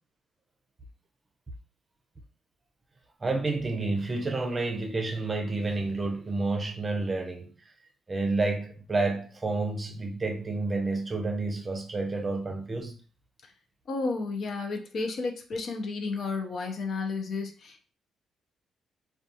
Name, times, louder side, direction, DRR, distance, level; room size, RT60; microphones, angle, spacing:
voice 1, 3.2-7.7 8.1-12.9, right 3 dB, 25° right, 0.6 m, -30 dB
voice 2, 13.9-17.8, left 3 dB, 55° left, 0.5 m, -32 dB
2.4 x 2.3 x 2.6 m
cardioid pair, 90°, 0 cm